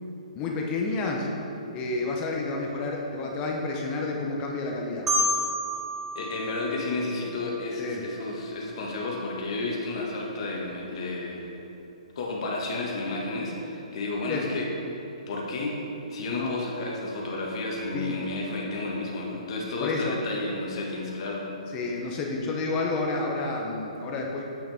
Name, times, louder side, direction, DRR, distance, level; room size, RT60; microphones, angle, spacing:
voice 1, 0.3-1.3 1.7-5.1 7.8-8.0 14.3-14.5 16.4-16.6 17.9-18.2 19.8-20.2 21.7-24.4, left 3 dB, 20° left, 0 dB, 0.6 m, -30 dB
Marimba xylophone, 5.1-7.9, equal, 10° right, 1.0 m, -30 dB
voice 2, 6.1-11.5 12.1-14.7 15.3-15.8 16.1-21.5, left 2 dB, 45° left, -2 dB, 1.4 m, -31 dB
8.4 x 6.2 x 3.4 m, 2.9 s
hypercardioid pair, 165°, 4 cm